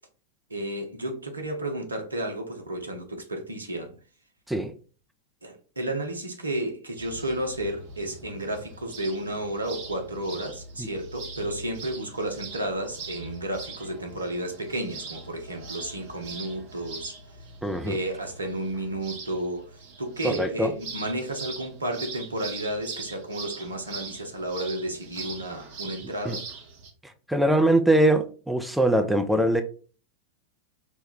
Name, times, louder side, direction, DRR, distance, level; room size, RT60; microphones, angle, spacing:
voice 1, 0.5-4.0 5.4-17.1 17.8-19.7 20.0-26.5, right 1 dB, 80° right, 0.6 m, -32 dB
sound 1, 7.0-26.9, right 4 dB, 50° right, 0.7 m, -42 dB
voice 2, 17.6-18.0 20.2-20.7 26.3-26.4 27.3-29.6, right 1 dB, ahead, 0.4 m, -22 dB
2.9 x 2.1 x 3.7 m
figure-of-eight pair, 90°, 0 cm